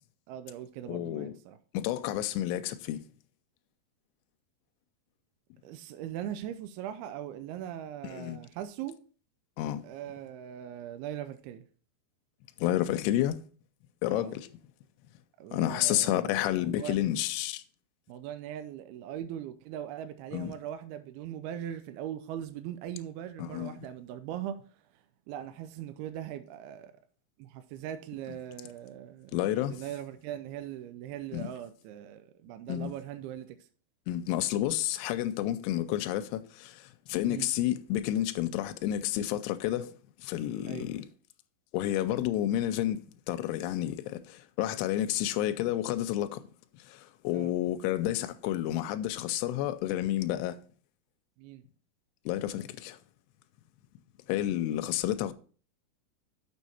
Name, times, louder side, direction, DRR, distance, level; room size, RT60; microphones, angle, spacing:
voice 1, 0.3-1.6 5.6-9.0 9.8-11.6 14.1-14.4 15.4-17.2 18.1-24.6 25.3-26.9 27.4-33.6 37.3-37.5 40.7-40.9 47.3-47.5 51.4-51.6, right 11 dB, 80° right, 2.4 m, -40 dB
voice 2, 0.9-1.3 1.7-3.0 8.0-8.4 9.6-9.8 12.6-13.4 14.0-14.5 15.5-17.6 20.3-20.6 23.4-23.8 29.3-29.8 31.3-31.5 32.7-32.9 34.1-41.1 41.7-46.4 46.8-50.6 52.3-53.0 54.3-55.3, left 13 dB, 90° left, 2.7 m, -30 dB
6.7 x 6.3 x 4.2 m
omnidirectional pair, 4.8 m